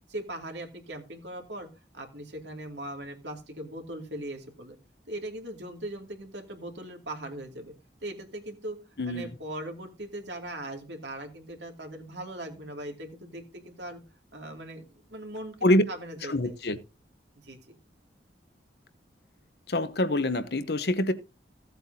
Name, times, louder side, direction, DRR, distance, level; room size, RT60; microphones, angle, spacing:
voice 1, 0.1-1.7 1.9-4.8 5.1-7.7 8.0-8.8 9.0-14.0 14.3-16.5 17.4-17.8, right 1 dB, 75° right, 2.6 m, -39 dB
voice 2, 9.0-9.3 15.6-15.8 16.2-16.8 19.7-21.1, left 1 dB, 65° left, 0.9 m, -25 dB
16.0 x 8.0 x 2.8 m
head